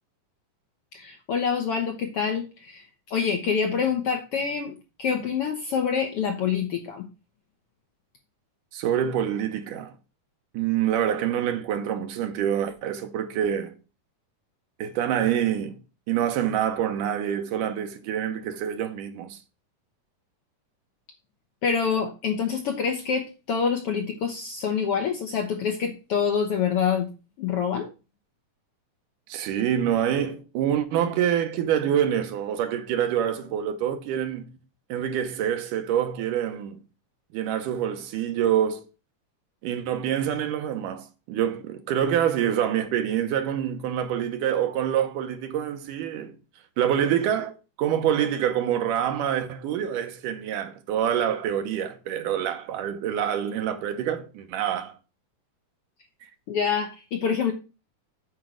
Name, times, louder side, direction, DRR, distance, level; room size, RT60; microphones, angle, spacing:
voice 1, 0.9-7.1 21.6-27.1 27.4-27.9 56.5-57.5, left 6 dB, 65° left, 1.5 m, -26 dB
voice 2, 8.7-9.9 10.5-13.8 14.8-15.8 16.1-19.4 29.3-34.5 34.9-36.8 37.3-38.9 39.6-46.4 46.8-55.0 56.2-56.3, right 9 dB, 80° right, 2.4 m, -26 dB
8.5 x 4.6 x 6.3 m
omnidirectional pair, 3.8 m